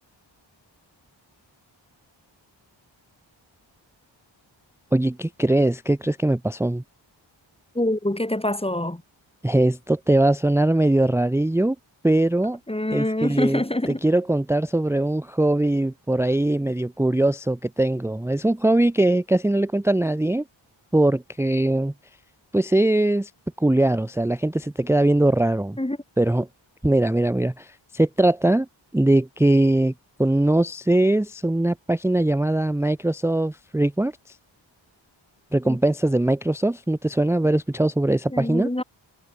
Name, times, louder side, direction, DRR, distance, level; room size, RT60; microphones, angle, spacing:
voice 1, 4.9-6.8 9.4-11.8 12.0-12.6 12.9-20.4 20.9-21.9 22.5-23.3 23.6-25.8 26.2-26.5 26.8-28.7 28.9-29.9 30.2-34.4 35.5-38.7, right 1 dB, 5° right, 0.6 m, -21 dB
voice 2, 7.8-9.0 12.7-14.0 25.8-26.0 35.6-35.8 38.3-38.8, left 1 dB, 10° left, 2.2 m, -25 dB
wide cardioid pair, 70°, 46 cm